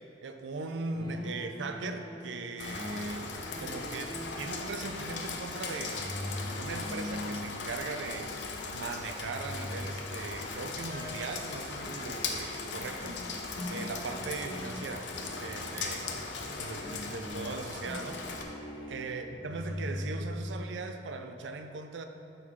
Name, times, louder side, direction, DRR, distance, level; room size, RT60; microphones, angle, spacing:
voice 1, 0.2-3.2 3.6-6.0 6.6-8.3 8.7-13.2 13.7-15.1 15.4-16.1 16.6-18.2 18.9-22.1, right 3 dB, 85° right, 6 dB, 0.4 m, -39 dB
sound 1, 0.9-8.4 8.8-10.3 10.9-20.6, left 1 dB, 25° left, 0.7 m, -42 dB
Rain, 2.6-18.4, left 4 dB, 75° left, 0.6 m, -39 dB
6.2 x 3.8 x 4.6 m, 2.7 s
head